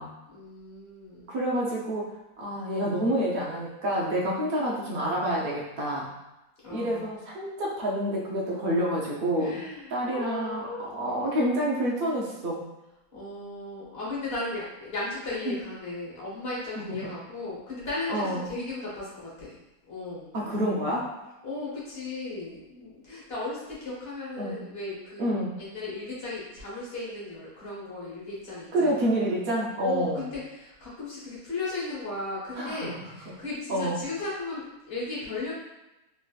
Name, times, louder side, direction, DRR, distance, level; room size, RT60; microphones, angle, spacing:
voice 1, 0.3-1.3 6.6-7.1 9.4-10.8 13.1-19.6 19.9-20.3 21.4-25.3 25.6-29.0 29.8-35.5, left 2 dB, 40° left, -6 dB, 1.2 m, -36 dB
voice 2, 1.3-2.1 2.4-6.1 6.7-9.6 9.9-12.7 15.5-15.6 18.1-18.4 20.3-21.3 24.4-24.6 25.2-25.6 28.7-30.2 32.5-32.9 33.7-34.0, right 1 dB, 65° right, -4 dB, 0.5 m, -28 dB
3.3 x 3.0 x 2.3 m, 0.98 s
omnidirectional pair, 1.7 m